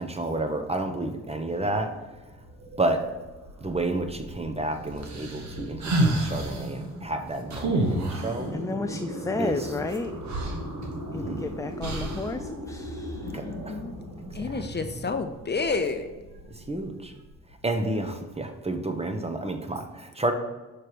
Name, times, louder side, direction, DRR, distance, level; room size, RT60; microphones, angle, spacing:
voice 1, 0.0-1.9 2.8-3.0 3.6-8.5 9.4-9.7 11.1-11.4 13.3-13.8 16.5-17.1 17.6-20.3, right 2 dB, 20° right, 6 dB, 1.0 m, -30 dB
sound 1, 1.1-18.5, equal, 75° right, 1.6 m, -40 dB
sound 2, 5.0-6.6 7.5-8.4 9.9-10.0 10.3-11.3 11.8-12.3, right 1 dB, 60° right, 1.3 m, -27 dB
voice 2, 8.5-10.1 11.1-13.3, left 3 dB, 10° left, 7 dB, 0.3 m, -32 dB
voice 3, 13.2-14.0 14.3-16.1, left 4 dB, 35° left, 7 dB, 0.7 m, -30 dB
6.5 x 3.3 x 5.9 m, 1.2 s
supercardioid pair, 55°, 32 cm